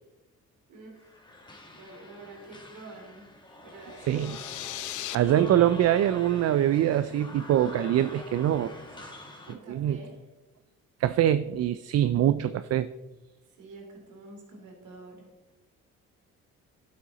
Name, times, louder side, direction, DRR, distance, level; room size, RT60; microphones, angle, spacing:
voice 1, 0.7-1.2 1.7-3.3 3.6-4.6 9.5-10.2 13.5-15.3, right 2 dB, 80° right, 0 dB, 3.0 m, -47 dB
sound 1, 0.9-9.5, left 2 dB, 15° left, 1.8 m, -46 dB
sound 2, 3.9-5.2, left 16 dB, 85° left, 0.5 m, -38 dB
voice 2, 4.1-4.4 5.1-8.7 9.7-10.0 11.0-12.9, right 11 dB, 55° right, 13 dB, 0.4 m, -24 dB
12.0 x 7.6 x 4.1 m, 1.1 s
cardioid pair, 90°, 30 cm